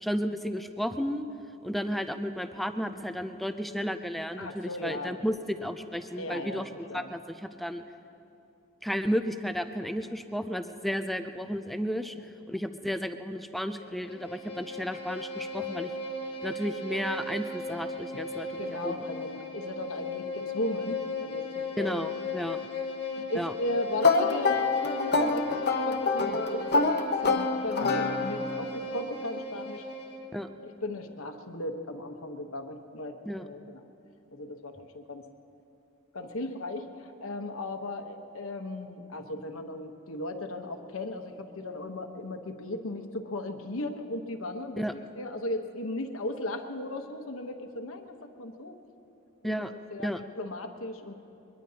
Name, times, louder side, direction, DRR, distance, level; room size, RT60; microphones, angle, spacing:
voice 1, 0.0-1.3 1.6-7.2 7.6-7.8 8.8-12.1 12.5-15.9 16.4-19.0 21.8-22.6 23.4-23.5 30.3-30.5 33.3-33.4 44.8-44.9 49.4-49.7 50.0-50.2, equal, ahead, 8 dB, 0.4 m, -33 dB
voice 2, 4.4-5.2 6.2-6.6 6.9-7.1 18.6-22.1 23.2-29.8 30.6-33.8 34.3-35.3 36.1-48.8 49.4-51.1, left 1 dB, 70° left, 5 dB, 1.1 m, -36 dB
Bowed string instrument, 13.7-30.3, left 2 dB, 25° left, 1.6 m, -37 dB
sound 1, 24.0-28.6, left 4 dB, 50° left, 0.9 m, -26 dB
22.0 x 21.5 x 2.9 m, 2.8 s
head